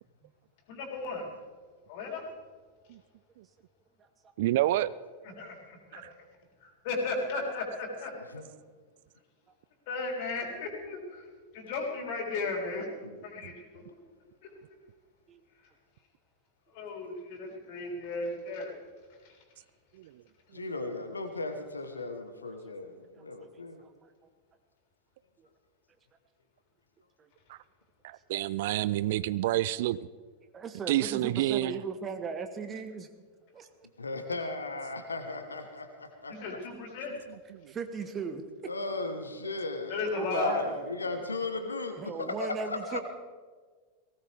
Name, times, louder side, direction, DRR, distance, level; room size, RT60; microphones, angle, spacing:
voice 1, 0.7-1.3 1.9-2.2 5.4-6.0 6.6-8.1 9.9-11.3 11.5-12.9 13.2-13.8 16.7-18.7 36.3-37.1 39.9-40.6, left 3 dB, 50° left, 1 dB, 3.9 m, -35 dB
voice 2, 4.4-4.9 5.9-6.1 27.5-27.6 28.0-30.0 30.9-31.7 37.5-37.7, right 15 dB, 55° right, 18 dB, 0.4 m, -28 dB
voice 3, 20.5-23.8 34.0-36.6 38.6-43.0, left 3 dB, 75° left, 6 dB, 1.3 m, -36 dB
voice 4, 23.8-24.1 25.4-25.5 27.2-27.3 30.5-33.1 33.5-33.6 37.7-38.4 40.0-41.0 42.0-43.0, right 5 dB, 25° right, 9 dB, 1.0 m, -37 dB
19.0 x 17.5 x 3.5 m, 1.5 s
figure-of-eight pair, 90°, 0 cm